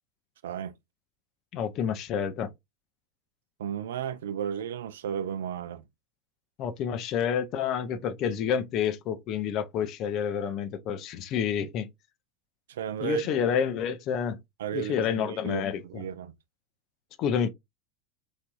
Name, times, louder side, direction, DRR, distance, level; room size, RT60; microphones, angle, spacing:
voice 1, 0.4-0.7 3.6-5.9 12.7-13.2 14.6-16.3, right 9 dB, 65° right, 0.3 m, -34 dB
voice 2, 1.5-2.5 6.6-11.9 13.0-14.4 14.7-16.0 17.2-17.5, left 8 dB, 45° left, 0.5 m, -29 dB
3.3 x 2.5 x 2.3 m
figure-of-eight pair, 80°, 0 cm